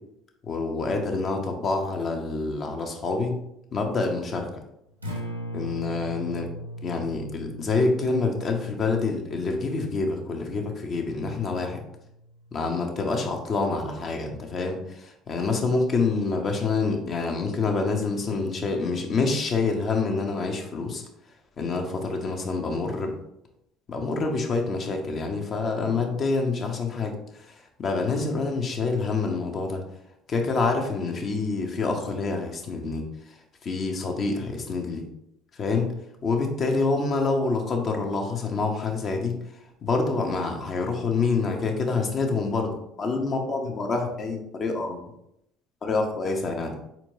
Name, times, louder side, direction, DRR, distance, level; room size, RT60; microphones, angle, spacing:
voice 1, 0.4-3.4 3.7-4.5 5.5-6.5 6.8-11.8 12.5-21.0 21.6-23.1 23.9-29.8 30.3-35.0 35.5-35.9 36.2-39.4 39.8-45.0 45.8-46.8, left 3 dB, 40° left, 3 dB, 0.8 m, -27 dB
Acoustic guitar, 4.9-13.1, equal, 90° right, 0.7 m, -40 dB
4.4 x 4.4 x 2.6 m, 0.80 s
figure-of-eight pair, 55°, 0 cm